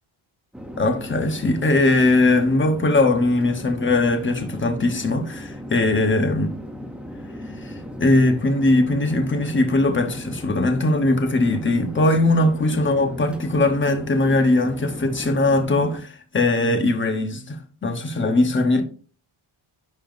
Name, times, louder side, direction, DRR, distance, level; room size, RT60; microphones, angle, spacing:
Chatter / Fixed-wing aircraft airplane, 0.5-16.0, equal, ahead, 0.6 m, -37 dB
voice 1, 0.8-6.5 7.6-7.7 8.0-18.8, left 2 dB, 25° left, 1.0 m, -20 dB
10.5 x 5.5 x 2.6 m
wide cardioid pair, 170°, 49 cm